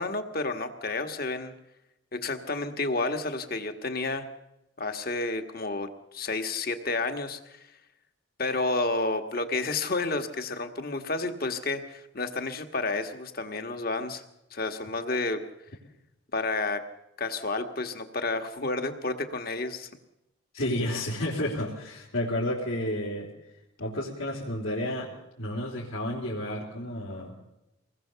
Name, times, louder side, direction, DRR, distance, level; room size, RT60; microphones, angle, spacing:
voice 1, 0.0-1.5 2.1-4.3 4.8-7.6 8.4-14.2 14.5-15.4 16.3-16.8 17.2-19.9, left 3 dB, 45° left, 6 dB, 1.7 m, -30 dB
voice 2, 20.5-23.3 23.8-25.1 25.4-27.3, left 1 dB, 75° left, -5 dB, 3.8 m, -31 dB
24.5 x 20.0 x 7.0 m, 0.90 s
head